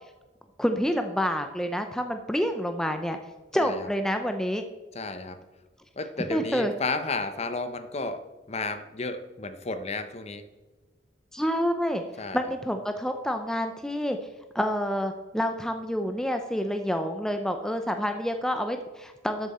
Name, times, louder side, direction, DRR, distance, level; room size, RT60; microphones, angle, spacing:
voice 1, 0.6-3.2 3.5-4.6 6.2-6.7 11.3-14.2 14.5-19.5, equal, 5° left, 6 dB, 0.6 m, -28 dB
voice 2, 3.5-3.9 4.9-5.4 6.0-10.4 12.2-12.4, left 3 dB, 35° left, 10 dB, 0.8 m, -32 dB
12.5 x 7.5 x 4.3 m, 1.2 s
head